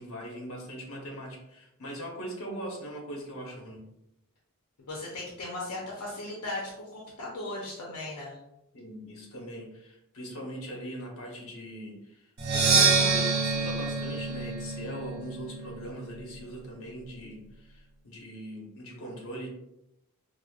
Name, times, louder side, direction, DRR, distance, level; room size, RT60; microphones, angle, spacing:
voice 1, 0.0-3.9 8.7-19.5, equal, 65° left, -1 dB, 1.0 m, -41 dB
voice 2, 4.8-8.4, left 2 dB, 85° left, -3 dB, 0.7 m, -37 dB
Percussion, 12.4-16.2, right 4 dB, 45° right, 0.5 m, -26 dB
4.9 x 2.0 x 2.4 m, 0.87 s
head